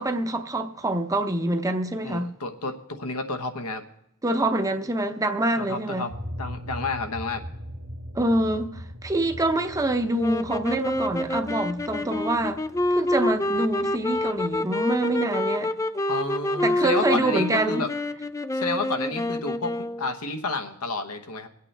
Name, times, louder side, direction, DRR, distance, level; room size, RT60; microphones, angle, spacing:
voice 1, 0.0-2.3 4.2-6.1 8.1-12.6 12.9-15.7 16.6-17.8, right 1 dB, 15° right, 0.7 m, -25 dB
voice 2, 2.0-3.8 5.6-6.1 6.4-7.4 16.1-17.9 18.5-21.5, left 3 dB, 85° left, 1.1 m, -30 dB
sound 1, 6.1-14.6, equal, 80° right, 1.6 m, -40 dB
sound 2, 10.2-20.2, left 1 dB, 15° left, 0.3 m, -27 dB
23.0 x 8.4 x 3.3 m
head